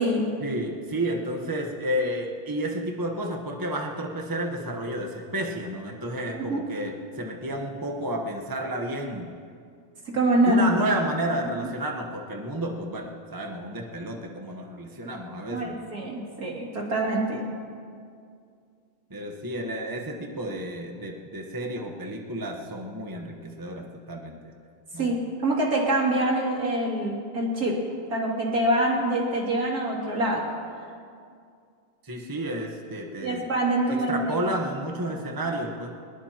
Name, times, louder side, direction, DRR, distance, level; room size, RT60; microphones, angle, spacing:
voice 1, 0.4-9.3 10.4-15.8 19.1-24.4 24.9-25.1 32.0-33.4 33.9-35.9, right 1 dB, 15° right, 1 dB, 0.7 m, -31 dB
voice 2, 10.1-10.7 11.6-11.7 15.5-17.4 25.0-30.4 33.2-34.4, right 1 dB, 45° right, -3 dB, 3.2 m, -25 dB
22.0 x 21.0 x 3.0 m, 2.3 s
omnidirectional pair, 2.4 m